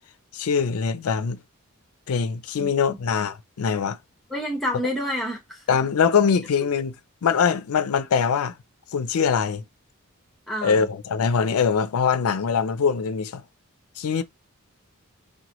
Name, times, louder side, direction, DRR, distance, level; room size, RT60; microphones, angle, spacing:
voice 1, 0.3-1.4 2.1-4.0 5.7-6.9 7.2-8.5 8.9-9.6 10.6-13.4 14.0-14.2, left 6 dB, 80° left, 0.4 m, -23 dB
voice 2, 2.6-3.0 4.3-5.6 10.5-10.9, equal, ahead, 1.0 m, -29 dB
2.9 x 2.2 x 2.9 m
head